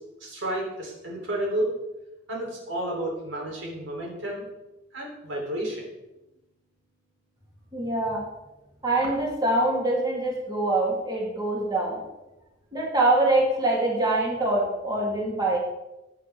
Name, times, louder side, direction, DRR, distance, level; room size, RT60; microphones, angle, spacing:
voice 1, 0.2-1.7 2.3-4.4 4.9-5.9, right 1 dB, 85° right, -1 dB, 3.6 m, -31 dB
voice 2, 7.7-8.2 8.8-12.0 12.7-15.6, right 2 dB, 20° right, -4 dB, 3.3 m, -24 dB
15.5 x 9.0 x 3.7 m, 0.97 s
head